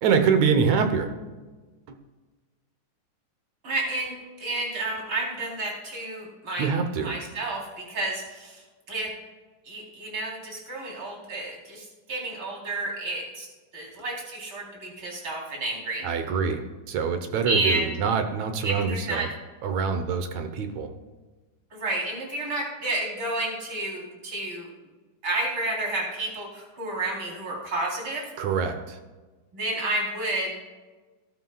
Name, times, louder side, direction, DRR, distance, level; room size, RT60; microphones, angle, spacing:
voice 1, 0.0-1.1 1.9-2.0 6.6-7.1 16.0-19.3 19.6-20.9 28.4-29.0, right 6 dB, 70° right, 7 dB, 2.1 m, -25 dB
voice 2, 3.6-4.1 4.4-6.7 7.0-9.1 9.6-13.5 13.7-16.1 17.5-17.9 18.6-19.3 21.7-24.7 25.2-28.3 29.5-30.5, right 2 dB, 40° right, -3 dB, 4.5 m, -30 dB
18.5 x 11.5 x 2.4 m, 1.3 s
omnidirectional pair, 3.7 m